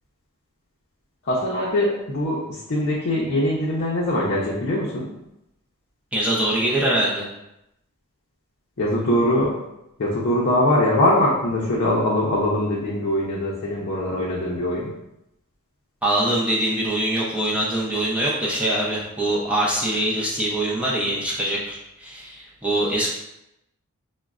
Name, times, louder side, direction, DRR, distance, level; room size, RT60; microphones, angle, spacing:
voice 1, 1.2-5.1 8.8-9.5 10.0-14.9, left 1 dB, 50° left, -5 dB, 0.6 m, -22 dB
voice 2, 6.1-7.3 16.0-23.1, right 1 dB, 5° right, -5 dB, 0.5 m, -23 dB
4.9 x 2.1 x 2.4 m, 0.86 s
head